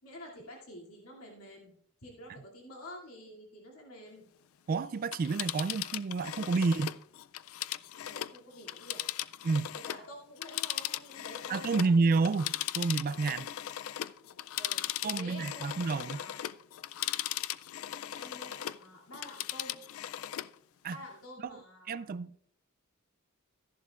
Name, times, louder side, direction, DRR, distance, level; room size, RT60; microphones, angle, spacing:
voice 1, 0.0-1.7 2.0-4.2 8.0-9.0 9.7-12.3 13.2-13.4 14.5-14.8 15.1-16.4 18.1-19.8 20.9-22.1, left 1 dB, 85° left, 2.5 m, -49 dB
voice 2, 4.7-7.0 9.4-9.7 11.5-13.5 15.0-16.2 20.8-21.0 21.5-21.6 21.9-22.3, right 4 dB, 40° right, 0.3 m, -29 dB
Telephone, 5.0-10.1 10.4-18.8 19.1-20.5 20.9-21.0, left 13 dB, 65° left, 0.3 m, -38 dB
14.0 x 11.0 x 2.4 m
head